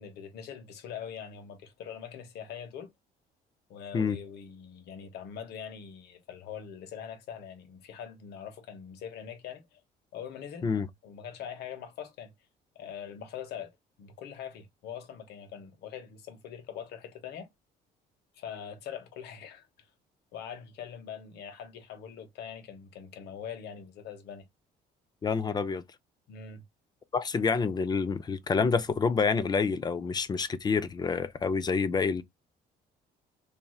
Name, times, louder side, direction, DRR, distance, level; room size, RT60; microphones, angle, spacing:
voice 1, 0.0-2.9 3.7-9.8 10.1-10.7 11.0-12.3 12.7-13.7 14.0-17.5 18.3-19.9 20.3-24.4 26.3-26.6, left 8 dB, 75° left, 1.0 m, -43 dB
voice 2, 25.2-25.8 27.1-32.2, left 5 dB, 25° left, 0.4 m, -28 dB
2.9 x 2.6 x 2.3 m
cardioid pair, 110°, 17 cm